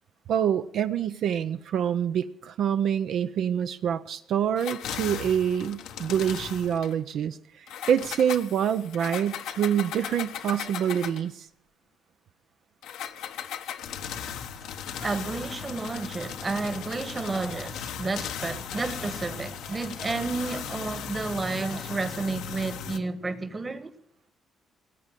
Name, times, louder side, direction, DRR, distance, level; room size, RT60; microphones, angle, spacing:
voice 1, 0.3-11.5, right 9 dB, 75° right, 0.6 m, -26 dB
sound 1, 4.6-6.9 7.7-11.3 12.8-23.0, left 8 dB, 85° left, 1.2 m, -37 dB
voice 2, 15.0-23.9, right 3 dB, 30° right, 1.3 m, -31 dB
18.0 x 8.4 x 9.0 m
cardioid pair, 90°, 0 cm